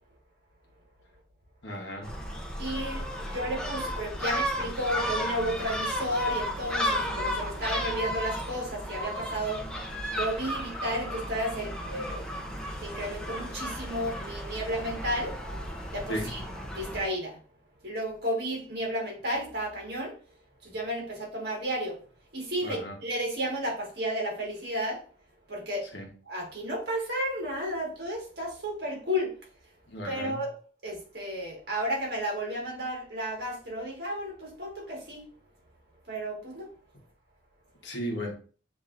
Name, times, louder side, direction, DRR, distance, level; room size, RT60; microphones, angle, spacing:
voice 1, 1.6-2.1 16.1-16.4 22.6-23.0 25.9-26.1 29.9-30.4 37.8-38.3, equal, 75° left, 1.1 m, -35 dB
Gull seagull, 2.0-17.0, equal, 5° left, 0.6 m, -34 dB
voice 2, 2.6-9.6 10.1-12.3 12.8-15.4 15.9-16.4 16.7-17.4 17.8-20.1 20.6-22.0 22.3-25.0 25.5-25.9 26.3-29.3 30.0-30.5 30.8-35.2 36.1-36.7, equal, 55° right, 1.7 m, -32 dB
7.1 x 2.8 x 2.5 m
head